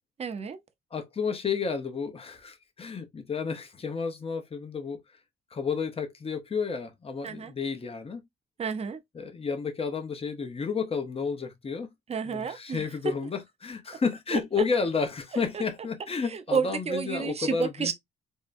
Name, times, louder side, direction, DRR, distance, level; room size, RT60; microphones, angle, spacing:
voice 1, 0.2-0.6 7.2-7.5 8.6-9.0 12.1-12.8 14.3-14.4 16.5-17.9, right 6 dB, 30° right, 0.6 m, -30 dB
voice 2, 0.9-5.0 5.5-8.2 9.1-11.9 12.2-17.9, left 5 dB, 30° left, 0.7 m, -31 dB
3.5 x 2.2 x 2.5 m
cardioid pair, 90°, 20 cm